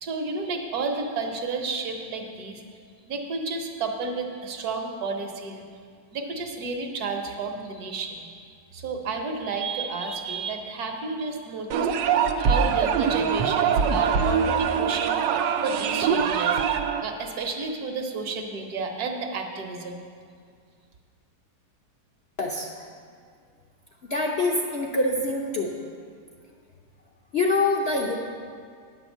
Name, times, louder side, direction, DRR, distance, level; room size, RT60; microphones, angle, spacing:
voice 1, 0.0-2.6 3.1-5.6 6.1-8.3 8.7-20.0, right 4 dB, 65° right, 3 dB, 1.4 m, -31 dB
sound 1, 11.7-17.0, right 7 dB, 85° right, 1.3 m, -23 dB
voice 2, 22.4-22.7 24.1-25.7 27.3-28.1, left 2 dB, 55° left, -1 dB, 0.7 m, -25 dB
9.6 x 6.2 x 7.2 m, 2.1 s
omnidirectional pair, 1.8 m